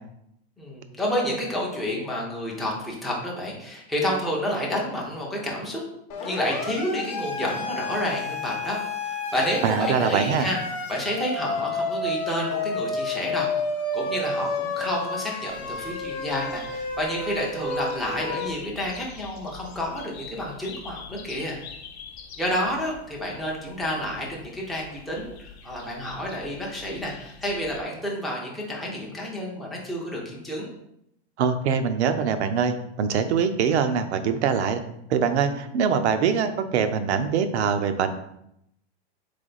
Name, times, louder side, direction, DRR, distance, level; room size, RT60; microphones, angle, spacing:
voice 1, 0.6-5.8 6.2-10.6 10.9-13.5 13.9-21.6 22.4-30.7, equal, ahead, -3 dB, 0.4 m, -30 dB
Siren, 6.1-18.5, left 3 dB, 35° left, 0.7 m, -30 dB
voice 2, 9.6-10.5 31.4-34.8 35.1-38.1, right 6 dB, 80° right, 9 dB, 0.6 m, -23 dB
sound 1, 15.5-27.8, left 6 dB, 70° left, 0.8 m, -45 dB
3.6 x 3.4 x 3.8 m, 0.78 s
supercardioid pair, 155°, 33 cm